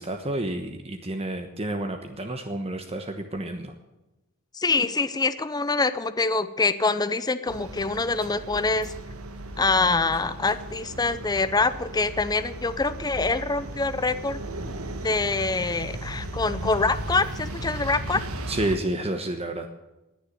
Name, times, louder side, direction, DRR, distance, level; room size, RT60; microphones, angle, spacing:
voice 1, 0.0-3.7 18.5-19.7, right 1 dB, 30° right, 5 dB, 1.1 m, -30 dB
voice 2, 4.5-8.9 9.6-14.4 15.0-18.2, left 3 dB, 20° left, 13 dB, 0.6 m, -25 dB
sound 1, 7.5-18.8, right 1 dB, 85° right, 1.6 m, -36 dB
19.5 x 7.1 x 9.2 m, 1.0 s
head